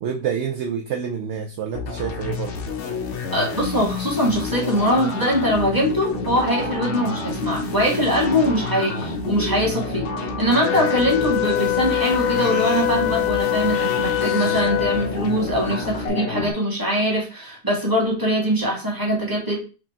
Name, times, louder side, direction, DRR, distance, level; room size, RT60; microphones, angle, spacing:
voice 1, 0.0-2.5, right 7 dB, 65° right, 3 dB, 0.7 m, -27 dB
sound 1, 1.7-16.5, left 5 dB, 60° left, 0.8 m, -30 dB
voice 2, 3.3-19.6, equal, 15° right, -4 dB, 1.8 m, -22 dB
sound 2, 6.1-16.1, right 6 dB, 30° right, 1.7 m, -34 dB
Wind instrument woodwind instrument, 10.6-15.3, left 17 dB, 80° left, 1.2 m, -23 dB
4.8 x 3.0 x 3.5 m, 0.35 s
omnidirectional pair, 1.6 m